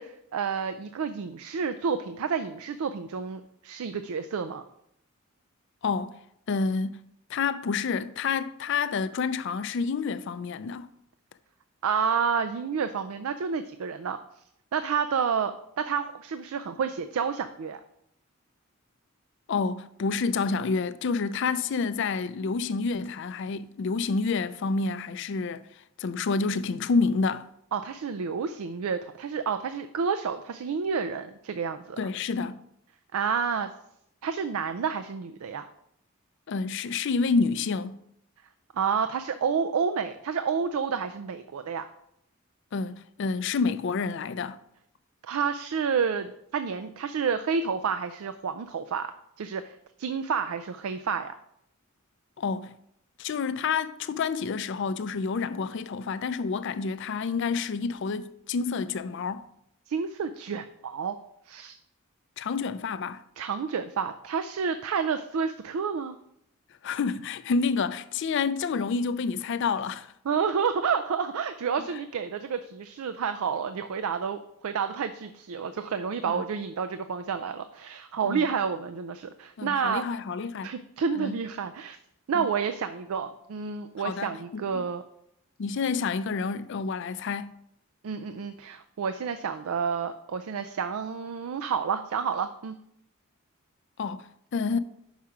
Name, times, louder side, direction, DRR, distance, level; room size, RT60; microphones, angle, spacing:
voice 1, 0.0-4.6 11.8-14.2 14.7-17.8 27.7-32.0 33.1-33.7 34.2-35.7 38.7-41.9 45.2-49.1 49.4-51.3 59.9-61.2 61.5-61.8 63.4-66.2 70.3-80.0 80.6-82.0 82.3-85.0 88.0-92.8, right 6 dB, 80° right, 0.4 m, -30 dB
voice 2, 5.8-6.2 6.5-7.0 7.3-10.9 19.5-25.6 26.0-27.5 32.0-32.6 36.5-38.0 42.7-44.6 52.4-52.7 53.2-59.4 62.4-63.2 66.8-70.1 76.2-76.4 78.2-78.4 79.6-80.7 81.2-81.4 82.3-82.5 84.0-84.3 84.7-84.8 85.6-87.5 94.0-94.8, left 4 dB, 55° left, 0.4 m, -28 dB
5.8 x 5.6 x 4.9 m
head